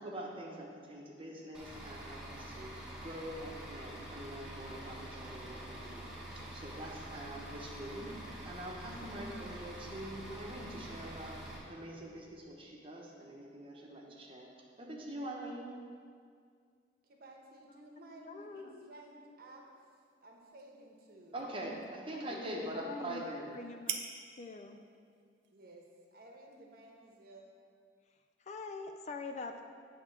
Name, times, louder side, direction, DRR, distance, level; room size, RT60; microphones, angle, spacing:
voice 1, 0.0-2.7 3.0-11.4 11.6-14.5 14.8-15.7 21.3-23.5, right 1 dB, 30° right, -2 dB, 1.0 m, -44 dB
Bus / Idling, 1.5-11.6, right 1 dB, 5° right, 1.4 m, -46 dB
voice 2, 17.0-19.7 20.2-21.4 25.5-27.4, right 1 dB, 55° right, 0 dB, 1.0 m, -55 dB
voice 3, 18.2-18.9 22.1-22.4 22.7-23.3 23.5-24.0 24.4-24.8 28.5-29.6, left 4 dB, 40° left, 5 dB, 0.4 m, -44 dB
Screwgate Caribiner, 19.5-27.3, right 7 dB, 70° right, 0.6 m, -49 dB
8.6 x 3.6 x 6.4 m, 2.1 s
head